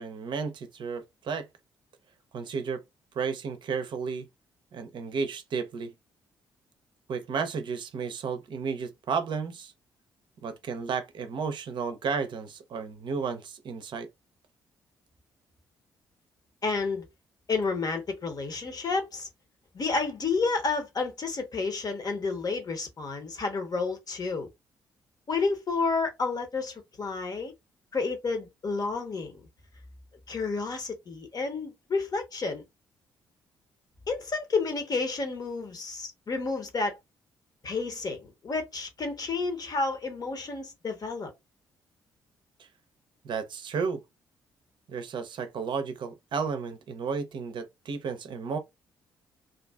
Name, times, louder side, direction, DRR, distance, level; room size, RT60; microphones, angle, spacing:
voice 1, 0.0-1.5 2.3-2.8 3.2-4.3 4.7-5.9 7.1-9.7 10.4-14.1 43.2-44.0 44.9-48.6, right 5 dB, 55° right, 0.5 m, -33 dB
voice 2, 16.6-17.1 17.5-19.3 19.7-24.5 25.3-27.5 27.9-29.4 30.3-32.6 34.1-37.0 37.6-41.3, left 4 dB, 40° left, 0.9 m, -30 dB
2.5 x 2.3 x 2.2 m
hypercardioid pair, 45°, 10 cm